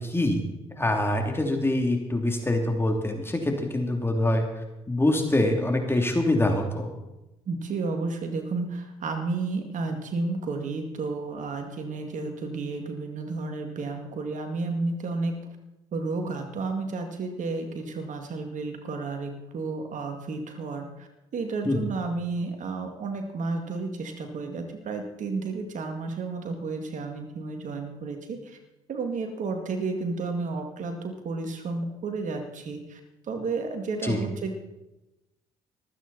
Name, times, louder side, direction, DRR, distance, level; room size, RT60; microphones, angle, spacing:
voice 1, 0.0-4.4 4.9-6.9 21.6-21.8 34.0-34.2, left 1 dB, 15° left, 3 dB, 2.9 m, -25 dB
voice 2, 7.5-15.4 15.9-28.6 28.9-33.0 33.3-34.6, right 3 dB, 55° right, 5 dB, 2.2 m, -32 dB
24.0 x 9.2 x 4.2 m, 0.98 s
hypercardioid pair, 60°, 15 cm